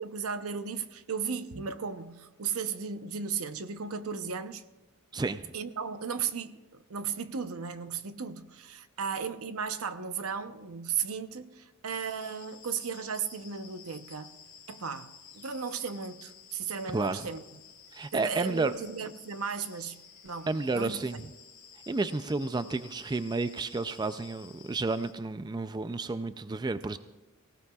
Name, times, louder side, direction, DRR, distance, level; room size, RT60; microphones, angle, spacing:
voice 1, 0.0-4.6 5.5-6.6 6.9-14.4 14.7-17.4 18.1-21.0, right 6 dB, 80° right, 0.7 m, -35 dB
voice 2, 5.1-5.5 16.9-17.3 17.9-18.7 20.5-21.2 21.9-27.0, right 3 dB, 20° right, 0.3 m, -31 dB
sound 1, 11.9-25.1, left 7 dB, 40° left, 3.9 m, -53 dB
23.5 x 16.5 x 2.3 m
head